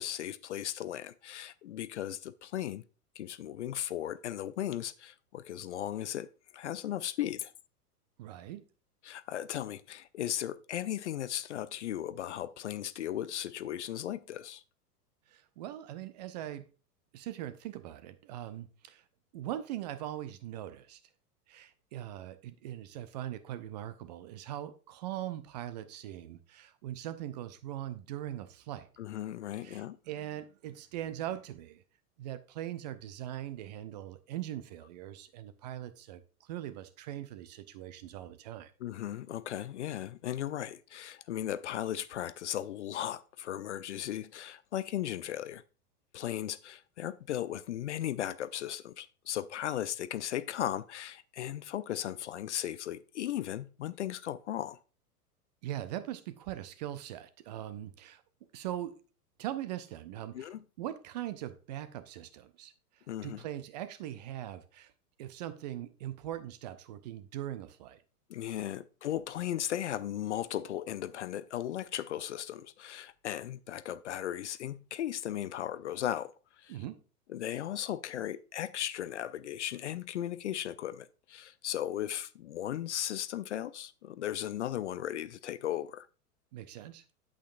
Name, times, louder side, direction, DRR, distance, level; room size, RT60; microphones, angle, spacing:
voice 1, 0.0-2.8 3.2-7.5 9.0-14.6 29.0-30.0 38.8-45.6 46.1-54.8 60.3-60.6 63.1-63.4 68.3-76.8 77.3-86.1, left 11 dB, 50° left, 0.5 m, -36 dB
voice 2, 8.2-8.6 15.3-16.7 17.1-19.0 19.3-21.0 21.5-28.9 29.6-31.8 32.2-38.7 55.6-58.2 58.5-59.0 59.4-64.9 65.2-68.0 76.7-77.0 86.5-87.0, right 12 dB, 30° right, 0.5 m, -41 dB
8.4 x 8.2 x 2.5 m
figure-of-eight pair, 100°, 47 cm